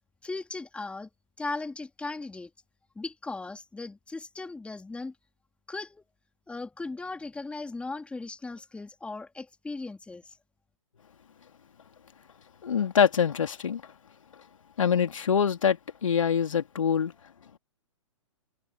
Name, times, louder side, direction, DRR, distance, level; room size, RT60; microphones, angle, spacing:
voice 1, 0.2-1.1 1.4-2.5 2.9-5.1 5.7-6.0 6.5-10.3, left 3 dB, 5° left, 3.4 m, -37 dB
voice 2, 12.6-13.8 14.8-17.1, left 7 dB, 70° left, 3.0 m, -24 dB
figure-of-eight pair, 120°, 17 cm